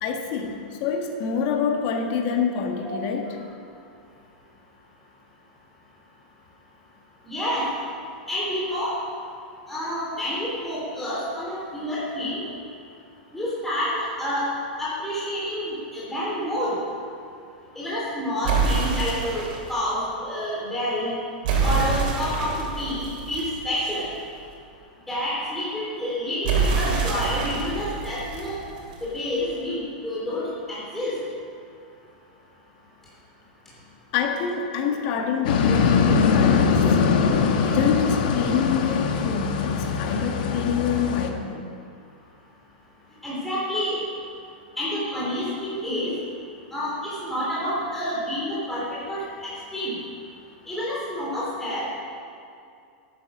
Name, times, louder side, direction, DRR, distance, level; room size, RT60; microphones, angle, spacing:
voice 1, 0.0-3.5 34.1-41.7, left 6 dB, 50° left, 3 dB, 1.7 m, -26 dB
voice 2, 7.3-7.6 8.3-8.9 9.7-12.4 13.3-14.5 14.8-16.8 17.7-21.1 21.6-24.0 25.1-28.6 29.0-31.1 43.2-44.0 44.8-46.1 46.7-49.9 50.7-51.9, equal, 5° left, -8 dB, 3.1 m, -28 dB
sound 1, 18.4-19.7 21.4-24.2 26.4-29.2, right 5 dB, 60° right, 3.5 m, -26 dB
sound 2, 35.4-41.3, left 5 dB, 70° left, 1.3 m, -22 dB
11.5 x 9.5 x 6.2 m, 2.4 s
supercardioid pair, 140°, 5 cm